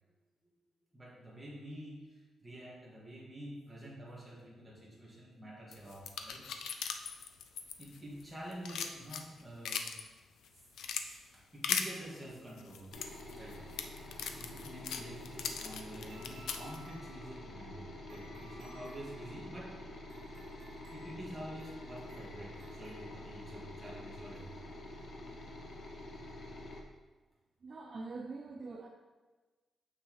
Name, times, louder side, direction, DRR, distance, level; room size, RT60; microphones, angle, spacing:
voice 1, 0.9-6.4 7.8-9.9 11.0-12.9 13.2-19.9 20.3-20.5 20.9-24.7, right 1 dB, 10° right, -6 dB, 1.9 m, -48 dB
sound 1, 5.7-8.2 8.5-10.0 10.4-11.0 11.6-11.9 12.6-16.8, left 7 dB, 85° left, 0.5 m, -38 dB
sound 2, 12.9-26.8, left 1 dB, 45° left, 0.9 m, -48 dB
sound 3, 16.1-23.8, equal, 60° right, 1.6 m, -60 dB
voice 2, 27.6-28.9, right 3 dB, 35° right, 3 dB, 0.4 m, -44 dB
6.9 x 6.2 x 3.1 m, 1.3 s
wide cardioid pair, 160°, 0 cm